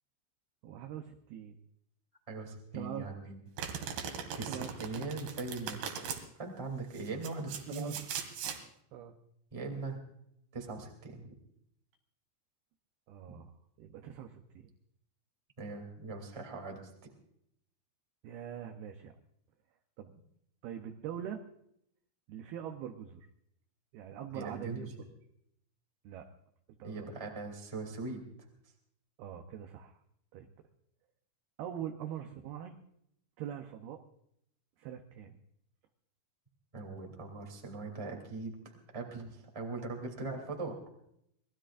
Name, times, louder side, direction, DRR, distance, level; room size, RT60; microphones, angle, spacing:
voice 1, 0.6-1.6 2.7-3.1 4.4-5.1 7.7-8.0 8.9-9.2 13.1-13.5 13.8-14.7 18.2-19.2 20.0-20.1 20.6-21.4 22.3-23.3 23.9-25.1 26.0-26.3 26.8-27.1 29.2-30.0 30.3-30.5 31.6-32.8 33.4-34.0 34.8-35.3, right 9 dB, 85° right, 5 dB, 2.2 m, -43 dB
voice 2, 2.3-3.4 4.3-5.8 6.4-7.9 9.5-10.0 10.5-11.2 15.6-16.9 24.3-24.8 26.8-28.2 36.7-40.8, right 3 dB, 10° right, 1 dB, 1.4 m, -40 dB
Domestic sounds home sounds, 3.6-6.2 6.9-8.6, right 7 dB, 65° right, 3.3 m, -39 dB
25.5 x 19.0 x 2.5 m, 0.73 s
omnidirectional pair, 5.6 m